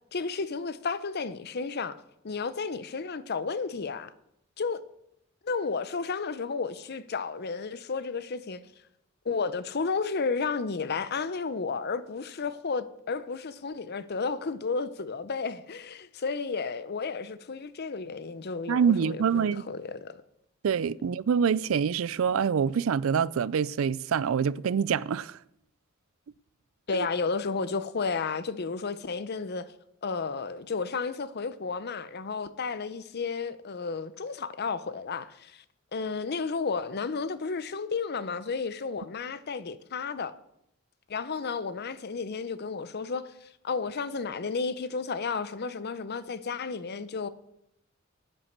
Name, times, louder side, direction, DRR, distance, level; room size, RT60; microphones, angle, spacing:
voice 1, 0.1-2.0 2.2-4.1 4.6-4.8 5.4-8.6 9.2-20.2 26.9-29.7 30.0-35.6 35.9-40.3 41.1-47.3, left 4 dB, 50° left, 0.7 m, -32 dB
voice 2, 18.7-19.6 20.6-25.4 26.9-27.1, right 7 dB, 75° right, 0.4 m, -26 dB
9.5 x 8.9 x 6.6 m
head